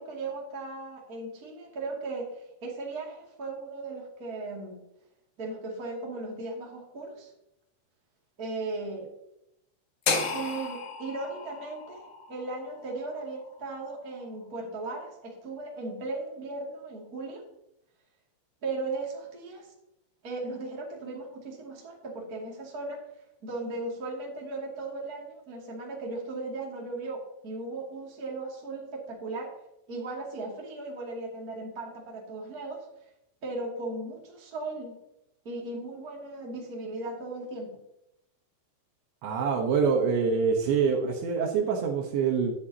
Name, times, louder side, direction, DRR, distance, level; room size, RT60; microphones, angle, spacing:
voice 1, 0.0-4.8 5.4-7.3 8.4-9.1 10.3-17.4 18.6-19.7 20.2-23.0 23.4-29.5 29.9-32.9 33.4-35.0 35.4-37.8, right 2 dB, 35° right, -3 dB, 1.4 m, -37 dB
sound 1, 10.1-14.2, left 4 dB, 70° left, 1.9 m, -34 dB
voice 2, 39.2-42.5, right 6 dB, 70° right, 0 dB, 3.2 m, -25 dB
12.5 x 10.5 x 2.8 m, 0.84 s
omnidirectional pair, 5.9 m